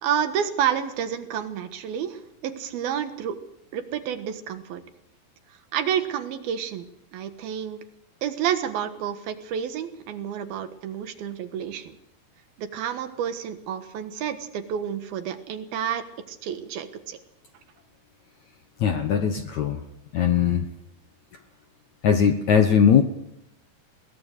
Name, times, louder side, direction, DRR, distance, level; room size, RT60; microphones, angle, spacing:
voice 1, 0.0-3.4 3.7-4.8 5.7-6.9 7.1-7.8 8.2-11.9 12.6-17.2, right 9 dB, 70° right, 9 dB, 3.1 m, -29 dB
voice 2, 18.8-19.8 20.1-20.7 22.0-23.0, left 7 dB, 70° left, 7 dB, 1.8 m, -20 dB
22.0 x 18.5 x 6.6 m, 0.84 s
omnidirectional pair, 4.7 m